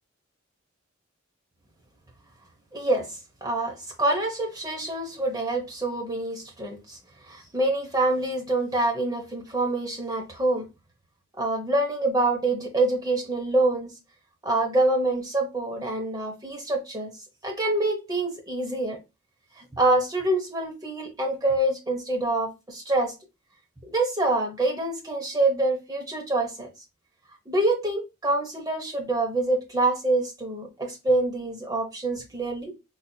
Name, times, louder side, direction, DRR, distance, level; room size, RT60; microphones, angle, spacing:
voice 1, 2.7-7.0 7.3-10.7 11.4-13.9 14.4-17.1 17.4-19.0 19.6-23.1 23.9-26.7 27.5-32.7, right 2 dB, 15° right, 0.9 m, -26 dB
4.0 x 2.8 x 2.2 m
head